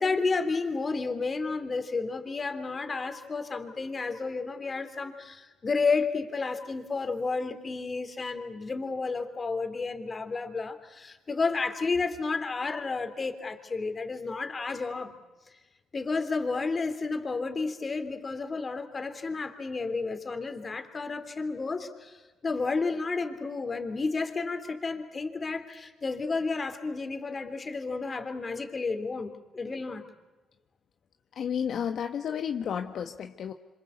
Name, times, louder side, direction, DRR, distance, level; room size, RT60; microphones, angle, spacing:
voice 1, 0.0-15.1 15.9-22.2 22.4-30.0, left 4 dB, 35° left, 8 dB, 3.4 m, -31 dB
voice 2, 31.4-33.5, left 8 dB, 65° left, 6 dB, 1.3 m, -32 dB
26.5 x 26.5 x 8.3 m, 1.2 s
cardioid pair, 90°, 0 cm